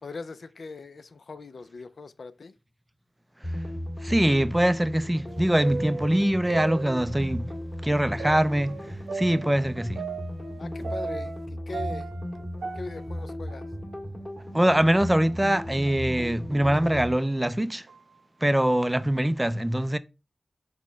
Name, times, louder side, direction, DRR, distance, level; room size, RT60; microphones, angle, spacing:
voice 1, 0.0-2.5 10.6-12.1 12.7-13.7, left 3 dB, 70° left, 0.3 m, -40 dB
sound 1, 3.4-17.2, left 1 dB, 25° left, 1.7 m, -36 dB
voice 2, 4.0-7.5 7.8-10.0 14.5-17.9 18.4-20.0, right 1 dB, 15° right, 0.3 m, -23 dB
sound 2, 5.3-7.4 8.2-11.4 11.7-14.1 14.4-14.5 15.2-15.3 16.1-16.3 16.9-17.0 17.9-18.2, right 4 dB, 85° right, 0.3 m, -37 dB
4.1 x 2.1 x 4.4 m
cardioid pair, 60°, 0 cm